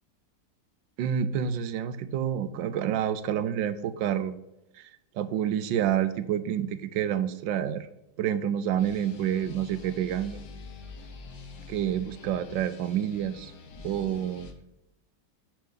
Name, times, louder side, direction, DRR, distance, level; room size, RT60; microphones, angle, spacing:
voice 1, 1.0-4.4 5.2-7.9 8.2-10.4 11.7-13.5 13.8-14.5, right 9 dB, 85° right, 12 dB, 1.4 m, -28 dB
sound 1, 8.8-14.5, left 4 dB, 65° left, 1.6 m, -45 dB
8.8 x 5.8 x 4.0 m, 0.90 s
omnidirectional pair, 2.0 m